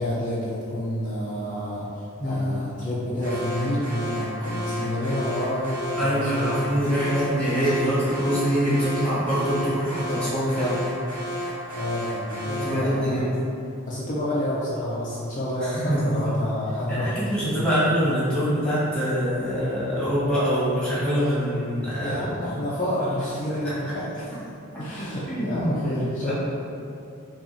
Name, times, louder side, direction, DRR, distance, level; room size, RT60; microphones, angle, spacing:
voice 1, 0.0-1.9 2.2-6.7 7.6-7.8 11.7-13.3 13.9-17.2 17.6-17.7 21.8-24.2 24.8-26.3, left 1 dB, 35° left, -7 dB, 0.4 m, -29 dB
Alarm, 3.2-12.9, equal, 85° right, 1.0 m, -33 dB
voice 2, 6.0-10.8 12.4-13.3 15.6-16.1 16.9-22.2 25.3-25.7 26.2-26.3, equal, 5° left, -11 dB, 1.2 m, -24 dB
5.6 x 2.4 x 2.7 m, 2.6 s
head